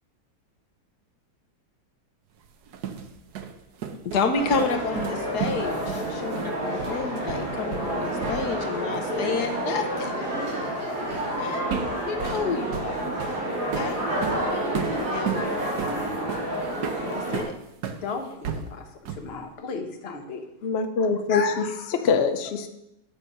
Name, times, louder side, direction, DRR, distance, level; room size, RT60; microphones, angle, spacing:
sound 1, 2.5-8.7 8.9-9.2 11.1-11.3 11.7-18.0 18.4-19.4, right 7 dB, 65° right, 1.2 m, -34 dB
voice 1, 4.0-10.1 11.4-11.7 12.1-13.1 13.7-14.0 15.0-15.4 17.1-17.5, left 4 dB, 60° left, 6 dB, 1.3 m, -29 dB
sound 2, 4.3-17.4, right 1 dB, 90° right, 4.4 m, -29 dB
voice 2, 18.0-18.8 19.2-20.4 21.3-22.1, left 5 dB, 40° left, 5 dB, 1.0 m, -33 dB
voice 3, 20.6-21.6 21.9-22.7, left 5 dB, 80° left, 8 dB, 0.5 m, -24 dB
9.0 x 6.1 x 5.4 m, 0.84 s
omnidirectional pair, 2.0 m